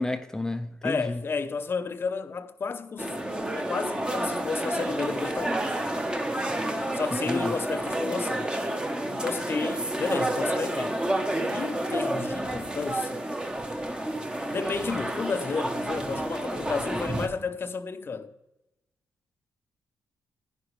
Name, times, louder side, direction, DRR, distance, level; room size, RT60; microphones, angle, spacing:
voice 1, 0.0-1.2 7.2-7.5, left 2 dB, 10° left, 0.5 m, -31 dB
voice 2, 0.8-3.2 3.5-5.7 6.9-8.5 9.1-11.0 11.5-13.2 14.5-18.3, left 5 dB, 40° left, 0.7 m, -32 dB
sound 1, 3.0-17.3, right 1 dB, 15° right, 1.0 m, -30 dB
11.0 x 10.0 x 3.2 m
cardioid pair, 100°, 6 cm